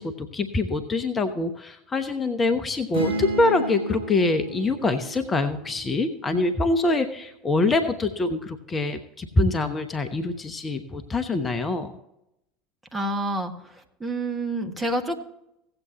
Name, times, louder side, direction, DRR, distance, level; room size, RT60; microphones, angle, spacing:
voice 1, 0.0-11.9, left 2 dB, 25° left, 10 dB, 0.9 m, -25 dB
sound 1, 2.9-6.7, right 3 dB, 65° right, 4.9 m, -34 dB
voice 2, 12.9-13.5 14.0-15.2, right 1 dB, 15° right, 4 dB, 1.6 m, -27 dB
17.0 x 7.8 x 2.9 m, 0.83 s
figure-of-eight pair, 75°, 0 cm